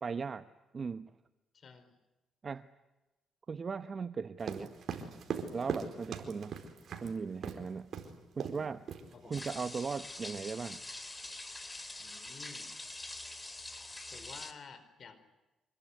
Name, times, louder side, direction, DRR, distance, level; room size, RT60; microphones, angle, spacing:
voice 1, 0.0-0.5 0.7-1.1 2.4-2.7 3.5-4.7 5.5-6.6 7.0-7.9 8.3-8.8 9.2-10.8, right 5 dB, 40° right, 12 dB, 0.9 m, -38 dB
voice 2, 1.5-1.9 9.1-9.4 12.0-12.7 14.1-15.2, left 5 dB, 50° left, 11 dB, 4.7 m, -52 dB
sound 1, 4.4-7.1 7.4-7.6 7.9-8.1 8.4-8.6 8.9-9.5, right 6 dB, 60° right, 4.5 m, -39 dB
sound 2, 9.3-14.5, left 2 dB, 15° left, 3.4 m, -45 dB
26.5 x 22.0 x 9.9 m, 1.0 s
cardioid pair, 90°, 0 cm